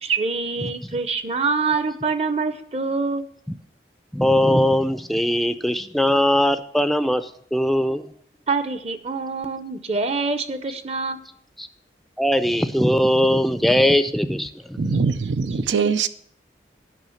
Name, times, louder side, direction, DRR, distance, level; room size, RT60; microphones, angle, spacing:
voice 1, 0.0-3.3 8.5-11.2, right 4 dB, 35° right, 0.7 m, -25 dB
voice 2, 4.1-8.1 11.6-11.7 12.2-15.0, equal, ahead, 0.4 m, -20 dB
voice 3, 14.8-16.1, right 5 dB, 85° right, 0.5 m, -22 dB
9.3 x 5.7 x 7.0 m
head